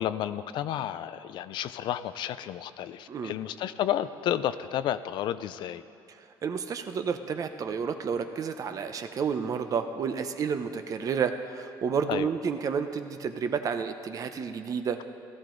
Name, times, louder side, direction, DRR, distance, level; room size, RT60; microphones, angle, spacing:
voice 1, 0.0-5.8 12.1-12.3, left 11 dB, 70° left, 13 dB, 0.5 m, -31 dB
voice 2, 6.4-15.0, right 6 dB, 45° right, 8 dB, 0.8 m, -30 dB
16.0 x 14.0 x 3.9 m, 2.6 s
cardioid pair, 115°, 8 cm